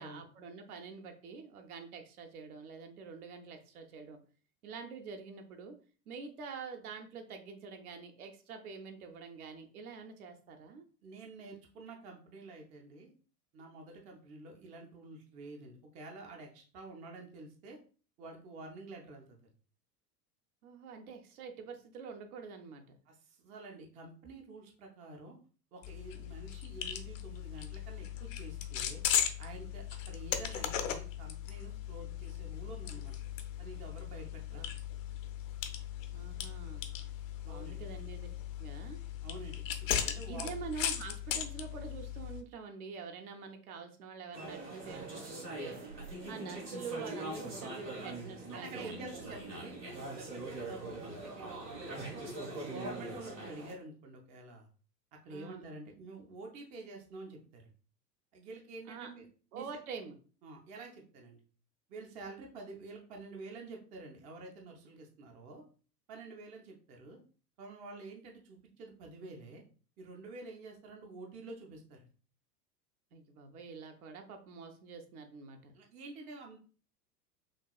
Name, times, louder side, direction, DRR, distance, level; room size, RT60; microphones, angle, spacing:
voice 1, 0.0-4.2 4.6-5.7 6.1-10.8 20.6-23.0 34.5-34.7 36.1-36.9 37.4-38.3 38.6-39.0 40.3-45.8 46.3-49.3 55.3-55.7 58.9-59.1 59.5-60.2 73.1-75.7, right 5 dB, 60° right, 5 dB, 0.8 m, -46 dB
voice 2, 11.0-13.1 13.5-17.8 18.2-19.4 23.1-25.4 25.7-29.0 29.4-33.2 33.6-34.7 37.4-37.8 39.2-40.5 48.5-52.2 52.7-54.7 55.2-57.7 58.3-59.3 59.5-59.6 60.4-61.4 61.9-65.6 66.1-67.2 67.6-69.6 70.0-72.1 75.7-76.6, right 3 dB, 15° right, 1 dB, 0.4 m, -49 dB
sound 1, 25.8-42.4, left 10 dB, 55° left, 0.6 m, -38 dB
sound 2, 44.3-53.7, right 2 dB, 80° right, 1.5 m, -42 dB
6.0 x 2.3 x 2.3 m, 0.39 s
figure-of-eight pair, 85°, 49 cm